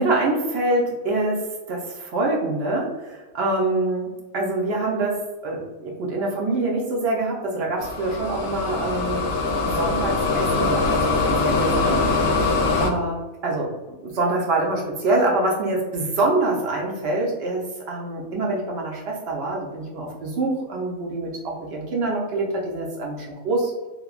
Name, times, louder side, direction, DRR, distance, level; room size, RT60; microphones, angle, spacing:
voice 1, 0.0-4.1 4.3-5.2 5.4-9.3 9.6-12.0 12.8-23.7, right 2 dB, 60° right, -1 dB, 0.7 m, -25 dB
sound 1, 7.8-12.9, left 3 dB, 80° left, 0.9 m, -22 dB
3.1 x 2.1 x 2.3 m, 1.2 s
omnidirectional pair, 1.4 m